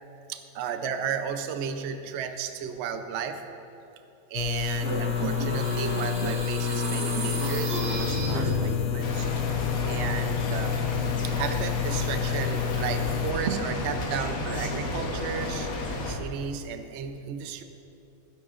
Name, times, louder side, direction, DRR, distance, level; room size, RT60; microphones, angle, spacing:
voice 1, 0.3-3.4 4.3-9.3 9.8-10.8 11.2-15.7 16.0-17.6, right 7 dB, 60° right, 8 dB, 0.7 m, -34 dB
sound 1, 4.3-13.3, left 10 dB, 80° left, 1.2 m, -29 dB
sound 2, 4.7-9.0, right 1 dB, 90° right, 2.0 m, -31 dB
sound 3, 9.0-16.2, left 2 dB, 60° left, 1.5 m, -32 dB
18.5 x 9.8 x 2.5 m, 2.7 s
omnidirectional pair, 1.8 m